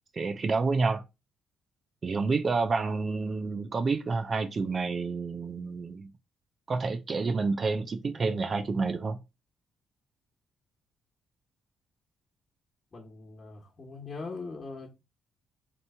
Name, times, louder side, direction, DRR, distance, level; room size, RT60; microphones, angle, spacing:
voice 1, 0.1-1.0 2.0-6.1 6.7-9.2, right 4 dB, 40° right, 0.5 m, -29 dB
voice 2, 12.9-14.9, left 4 dB, 35° left, 1.1 m, -41 dB
3.3 x 3.0 x 4.2 m
cardioid pair, 90°, 0 cm